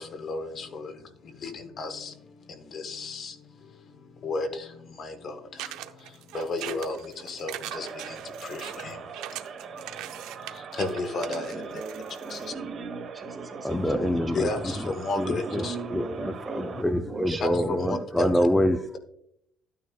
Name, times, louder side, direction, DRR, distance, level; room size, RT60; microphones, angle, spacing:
voice 1, 0.0-11.8 12.3-12.5 14.3-15.8 17.3-18.5, left 3 dB, 35° left, 7 dB, 0.9 m, -35 dB
sound 1, 5.6-12.5, right 12 dB, 70° right, 0.6 m, -40 dB
sound 2, 7.7-16.8, right 6 dB, 40° right, 1.2 m, -42 dB
voice 2, 11.2-14.8 15.2-18.2, right 3 dB, 15° right, 5 dB, 1.4 m, -38 dB
voice 3, 13.6-14.7 15.2-15.6 15.9-19.0, left 1 dB, 5° left, 6 dB, 0.4 m, -26 dB
12.5 x 9.3 x 2.3 m, 0.75 s
cardioid pair, 170°, 0 cm